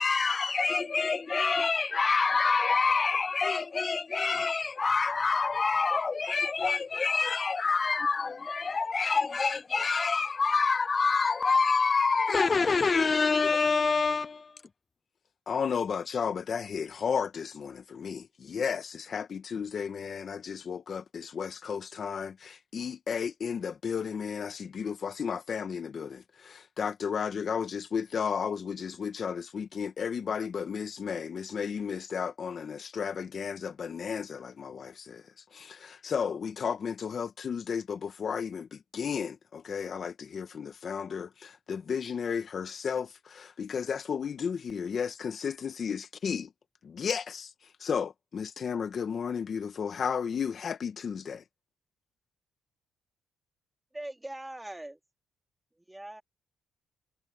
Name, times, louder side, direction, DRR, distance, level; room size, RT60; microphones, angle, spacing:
voice 1, 0.0-14.5, left 4 dB, 35° left, 0.3 m, -26 dB
voice 2, 15.5-46.5 46.8-51.4, left 6 dB, 50° left, 1.5 m, -33 dB
voice 3, 53.9-55.0 55.7-56.2, right 1 dB, 10° right, 3.8 m, -41 dB
cardioid pair, 90°, 0 cm